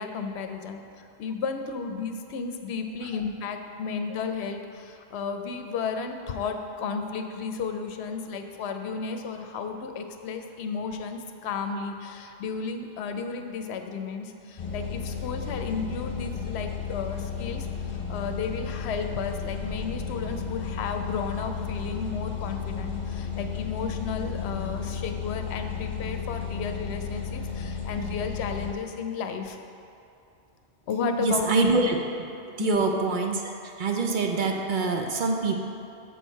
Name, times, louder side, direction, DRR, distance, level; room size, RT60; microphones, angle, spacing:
voice 1, 0.0-29.6 30.9-31.5 32.6-32.8, left 5 dB, 80° left, 6 dB, 0.8 m, -33 dB
sound 1, 14.6-28.7, left 6 dB, 45° left, 0.9 m, -33 dB
voice 2, 31.2-32.3 32.6-33.4 33.8-35.6, right 3 dB, 55° right, 3 dB, 0.7 m, -25 dB
6.2 x 6.2 x 4.5 m, 2.6 s
omnidirectional pair, 1.1 m